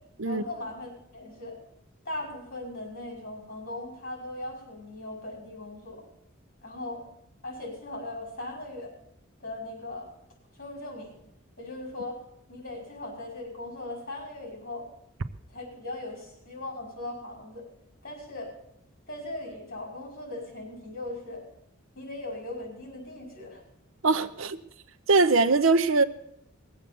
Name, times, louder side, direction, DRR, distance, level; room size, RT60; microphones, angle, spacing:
voice 1, 0.2-1.6 2.0-6.0 6.6-7.0 7.4-8.9 9.4-10.1 10.6-11.2 11.6-12.2 12.5-14.9 15.5-17.6 18.0-18.5 19.1-21.4 22.0-23.6, left 2 dB, 45° left, 5.7 m, -39 dB
voice 2, 24.0-24.6 25.1-26.0, right 3 dB, 70° right, 0.7 m, -21 dB
19.5 x 7.9 x 7.0 m
head